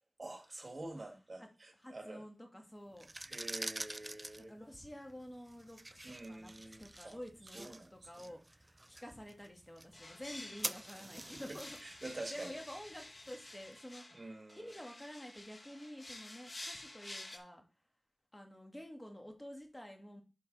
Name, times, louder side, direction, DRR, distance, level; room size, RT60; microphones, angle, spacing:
voice 1, 0.2-2.2 3.2-4.5 6.0-7.2 7.5-7.9 11.8-12.5 14.1-14.7, right 2 dB, 50° right, 2.0 m, -47 dB
voice 2, 1.7-3.1 4.5-6.5 6.8-17.6 18.3-20.2, equal, 15° left, 1.7 m, -50 dB
sound 1, 2.9-13.8, right 1 dB, 30° right, 0.3 m, -48 dB
sound 2, 9.9-17.4, left 1 dB, 45° left, 1.1 m, -51 dB
10.5 x 3.7 x 4.0 m
wide cardioid pair, 55°, 0 cm